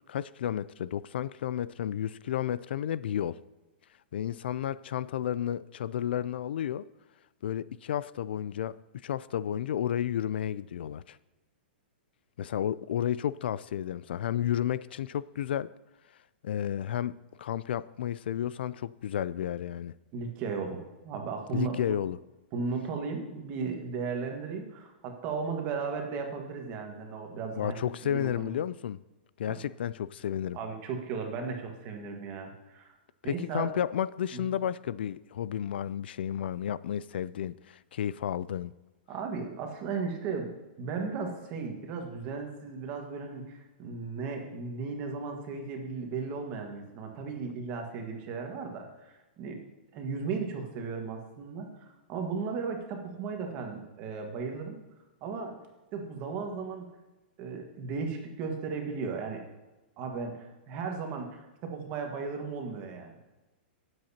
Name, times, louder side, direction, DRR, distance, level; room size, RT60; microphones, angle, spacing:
voice 1, 0.1-3.4 4.1-6.8 7.4-8.8 9.0-11.2 12.4-15.7 16.4-19.9 21.5-22.2 27.5-29.0 29.4-30.6 33.2-38.7, left 10 dB, 70° left, 18 dB, 0.3 m, -32 dB
voice 2, 20.1-21.9 22.5-28.5 29.5-29.6 30.5-33.0 33.2-33.8 34.3-34.5 39.1-40.5 40.8-49.6 49.9-51.7 52.1-54.8 55.2-55.5 55.9-56.9 57.4-59.4 60.0-63.2, right 5 dB, 30° right, 3 dB, 1.6 m, -36 dB
18.0 x 7.8 x 2.9 m, 1.1 s
hypercardioid pair, 165°, 6 cm